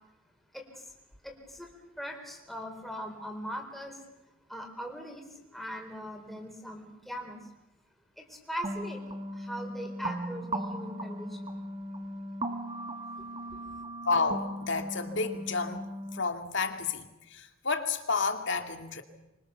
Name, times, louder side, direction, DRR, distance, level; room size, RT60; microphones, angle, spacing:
voice 1, 1.2-1.7 2.0-4.0 4.5-5.2 5.5-7.4 8.2-9.0 9.3-11.5 13.5-13.6, equal, ahead, 2 dB, 4.3 m, -40 dB
sound 1, 8.6-16.2, right 1 dB, 25° right, 1.4 m, -37 dB
voice 2, 14.0-15.8 16.1-19.0, left 4 dB, 60° left, 6 dB, 2.3 m, -31 dB
25.5 x 24.5 x 7.0 m, 0.95 s
head